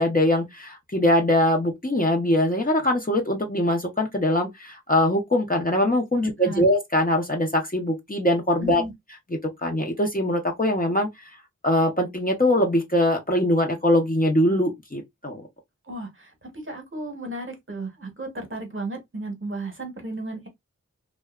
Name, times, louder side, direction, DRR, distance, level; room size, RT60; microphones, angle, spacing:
voice 1, 0.0-8.8 9.6-11.1 11.6-15.4, left 1 dB, 30° left, 0.7 m, -22 dB
voice 2, 6.2-6.6 8.6-8.9 15.8-20.5, right 2 dB, 40° right, 0.9 m, -34 dB
2.6 x 2.2 x 2.3 m
wide cardioid pair, 45°, 30 cm